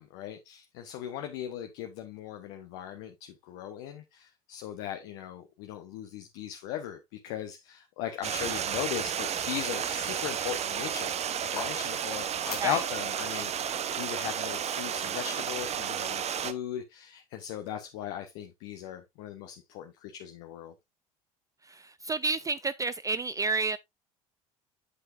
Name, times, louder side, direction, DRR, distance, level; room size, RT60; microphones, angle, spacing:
voice 1, 0.0-11.2 11.5-13.7 14.0-20.7, left 10 dB, 60° left, 1.2 m, -38 dB
Stream, 8.2-16.5, right 8 dB, 35° right, 0.9 m, -32 dB
sound 1, 11.3-15.5, left 5 dB, 90° left, 1.7 m, -45 dB
voice 2, 21.6-23.8, right 4 dB, 20° right, 0.4 m, -30 dB
8.3 x 7.9 x 2.6 m
figure-of-eight pair, 65°, 18 cm